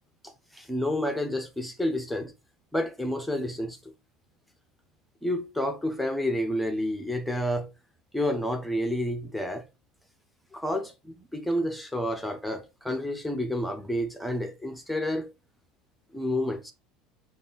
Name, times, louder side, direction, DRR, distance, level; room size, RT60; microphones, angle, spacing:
voice 1, 0.2-2.3 2.7-3.8 5.2-7.7 8.1-9.7 10.5-15.3 16.1-16.7, left 1 dB, ahead, 0.8 m, -30 dB
5.2 x 2.5 x 4.0 m
supercardioid pair, 110°, 0 cm